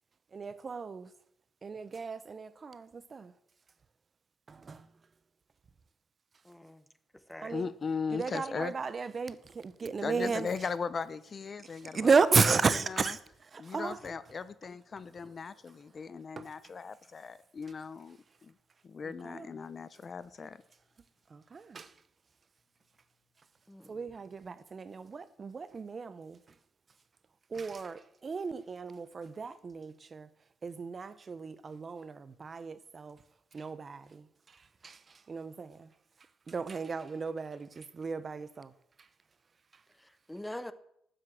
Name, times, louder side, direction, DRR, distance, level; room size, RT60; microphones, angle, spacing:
voice 1, 0.3-1.1 1.6-3.3 4.5-5.1 7.4-7.7 8.1-10.7 11.6-14.0 15.2-15.4 16.4-16.7 19.0-19.6 21.3-22.0 23.9-26.6 27.5-30.3 30.6-33.2 33.5-35.9 36.2-38.7 39.0-39.1 39.7-39.8, right 5 dB, 35° right, 0.7 m, -34 dB
voice 2, 6.4-6.8 7.1-7.6 23.7-24.0 39.9-40.7, left 1 dB, 5° left, 0.9 m, -44 dB
voice 3, 7.5-8.7 9.8-12.1 13.8-18.2 18.4-18.5 18.8-20.6, left 5 dB, 35° left, 0.6 m, -38 dB
12.5 x 7.8 x 7.7 m
cardioid pair, 110°, 0 cm